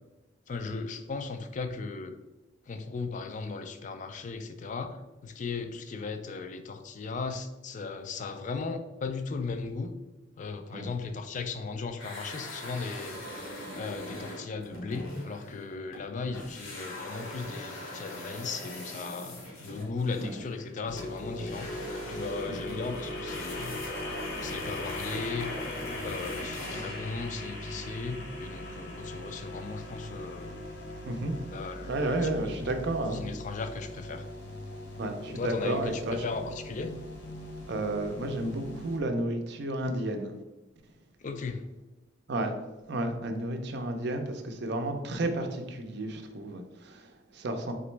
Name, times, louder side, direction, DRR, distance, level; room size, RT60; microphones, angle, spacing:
voice 1, 0.5-2.2 2.7-9.9 10.4-13.2 13.7-19.4 19.6-23.9 24.4-25.5 26.0-30.7 31.5-32.2 32.5-32.6 33.1-34.3 35.3-36.9 41.2-41.6, left 4 dB, 40° left, 8 dB, 0.3 m, -37 dB
sound 1, 12.0-16.1 16.3-27.1, left 1 dB, 80° left, 1.1 m, -42 dB
sound 2, 20.9-39.0, left 1 dB, 55° left, 0.9 m, -40 dB
voice 2, 31.0-31.4 31.9-33.3 35.0-36.2 37.7-40.3 42.3-42.5 42.9-47.7, right 1 dB, 55° right, 5 dB, 0.5 m, -32 dB
3.8 x 3.0 x 3.2 m, 1.1 s
head